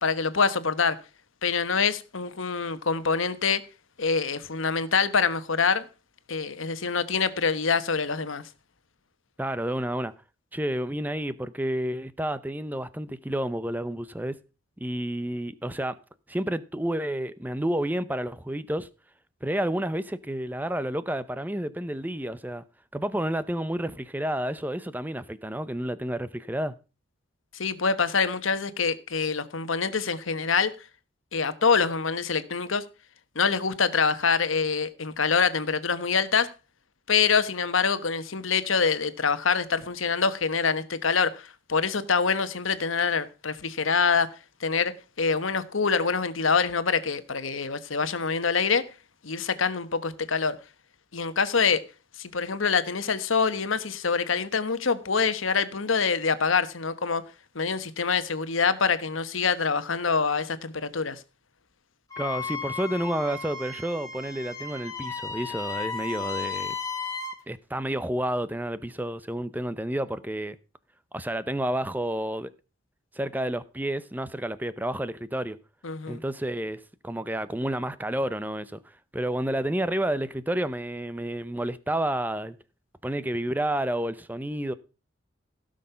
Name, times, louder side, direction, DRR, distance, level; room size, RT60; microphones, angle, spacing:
voice 1, 0.0-1.0 1.4-3.6 4.0-5.8 6.3-8.4 27.5-30.7 31.3-32.8 33.3-36.5 37.1-44.3 44.6-44.9 45.2-48.8 49.2-50.6 51.1-51.8 52.2-57.2 57.5-61.2 75.8-76.2, left 5 dB, 80° left, 1.2 m, -25 dB
voice 2, 9.4-10.1 10.5-14.4 14.8-16.0 16.3-18.9 19.4-22.6 22.9-26.8 62.2-66.8 67.5-70.6 71.1-72.5 73.1-75.6 76.1-82.6 83.0-84.7, right 1 dB, 10° right, 0.6 m, -30 dB
Wind instrument woodwind instrument, 62.1-67.4, left 5 dB, 15° left, 2.7 m, -34 dB
16.5 x 6.4 x 5.6 m
head